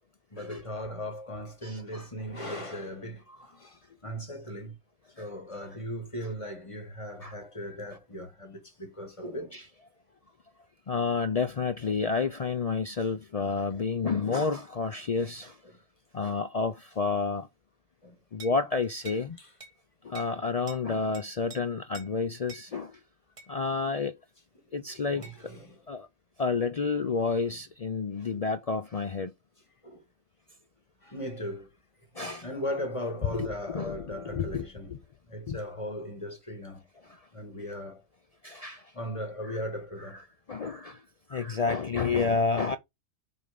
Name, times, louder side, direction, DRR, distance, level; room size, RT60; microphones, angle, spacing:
voice 1, 0.3-4.8 5.2-9.6 13.4-13.6 18.0-18.2 19.4-19.5 20.3-20.4 24.9-25.8 27.5-27.6 29.8-30.0 31.0-31.7 32.1-35.0 35.3-38.1 38.9-40.2, equal, 25° left, 1.9 m, -38 dB
voice 2, 1.6-2.1 5.2-5.3 7.2-7.4 9.5-9.6 10.9-15.6 16.1-17.5 18.3-19.4 20.0-23.0 23.5-24.1 24.7-25.3 25.9-26.1 26.4-29.3 32.2-32.5 33.3-35.0 35.5-35.6 38.4-38.8 39.5-39.6 40.5-41.0 41.3-42.8, left 4 dB, 65° left, 0.3 m, -30 dB
sound 1, 18.4-18.6 19.0-19.3 19.6-19.8 20.1-20.4 20.7-20.8 21.1-21.6 21.9-22.1 22.5-22.7 23.4-23.5 25.2-25.4, right 3 dB, 25° right, 1.9 m, -46 dB
6.6 x 3.5 x 5.2 m
omnidirectional pair, 1.4 m